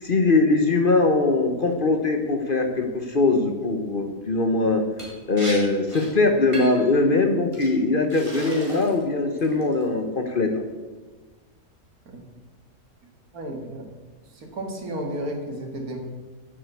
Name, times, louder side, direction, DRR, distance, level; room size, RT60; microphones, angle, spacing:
voice 1, 0.0-4.8 5.3-10.5, left 3 dB, 40° left, 6 dB, 1.0 m, -21 dB
Liquid, 5.0-5.1 5.4-5.6 5.9-6.1 6.5-6.9 7.5-7.7 8.1-9.0 9.4-9.8, right 1 dB, 20° right, 2.9 m, -36 dB
voice 2, 13.3-13.8 14.3-16.0, right 1 dB, 75° right, 3 dB, 2.3 m, -33 dB
9.3 x 7.6 x 8.2 m, 1.3 s
omnidirectional pair, 1.5 m